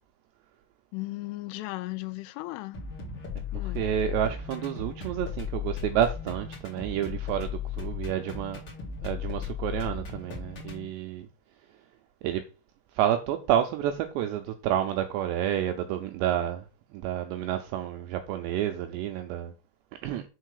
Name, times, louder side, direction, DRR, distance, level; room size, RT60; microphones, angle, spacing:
voice 1, 0.9-2.8 3.5-3.8, left 20 dB, 85° left, 3.1 m, -36 dB
sound 1, 2.7-10.8, left 7 dB, 40° left, 2.0 m, -36 dB
voice 2, 3.6-8.6 9.0-11.3 12.2-12.4 13.0-16.6 16.9-19.5 20.0-20.2, right 11 dB, 90° right, 2.5 m, -29 dB
6.5 x 4.5 x 6.4 m
omnidirectional pair, 5.6 m